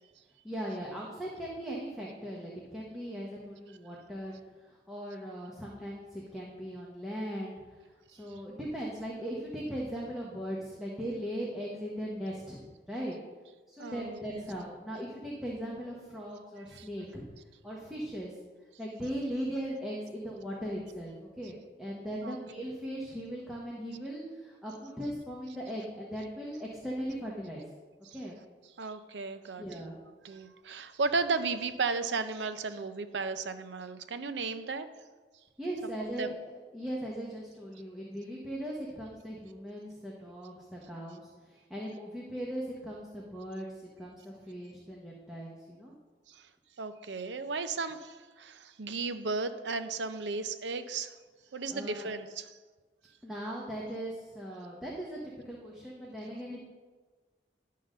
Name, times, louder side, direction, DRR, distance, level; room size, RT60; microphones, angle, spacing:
voice 1, 0.4-13.2 13.7-17.2 17.6-18.4 18.8-27.6 28.1-28.3 29.6-30.0 35.6-43.7 44.0-45.9 51.7-52.1 53.2-55.2 55.4-56.6, equal, 5° right, -5 dB, 1.0 m, -39 dB
voice 2, 13.8-14.4 16.7-16.9 22.2-22.4 28.1-28.2 28.8-29.8 30.2-34.9 36.2-36.3 46.3-46.4 46.8-51.1 51.5-52.4, right 4 dB, 85° right, 10 dB, 0.6 m, -34 dB
11.0 x 3.8 x 6.5 m, 1.4 s
head